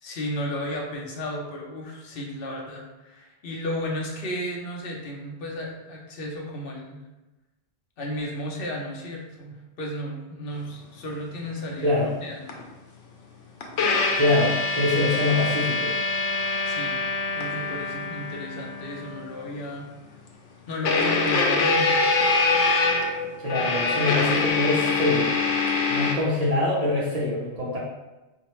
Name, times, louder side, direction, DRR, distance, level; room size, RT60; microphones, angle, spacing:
voice 1, 0.0-7.0 8.0-12.5 16.7-17.0 17.3-19.9 20.7-22.1, left 1 dB, 60° left, -1 dB, 0.8 m, -33 dB
sound 1, 12.5-12.6 13.6-19.5 20.9-26.1, left 3 dB, 90° left, 0.9 m, -24 dB
voice 2, 14.2-15.9 23.4-25.3 25.9-27.8, left 2 dB, 40° right, -7 dB, 0.7 m, -24 dB
4.4 x 2.1 x 3.0 m, 1.1 s
omnidirectional pair, 1.2 m